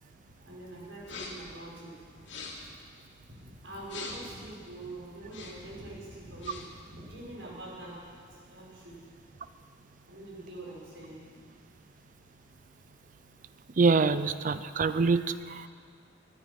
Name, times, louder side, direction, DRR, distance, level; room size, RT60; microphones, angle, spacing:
voice 1, 0.4-1.9 3.2-8.0 8.5-9.0 10.1-11.2, right 2 dB, 90° right, -4 dB, 5.2 m, -44 dB
sound 1, 1.0-1.5 2.2-2.7 3.8-4.4 5.2-5.7 6.2-6.8, left 3 dB, 75° left, 2.5 m, -43 dB
voice 2, 13.8-15.7, right 4 dB, 45° right, 13 dB, 0.5 m, -25 dB
23.0 x 10.0 x 5.9 m, 2.2 s
head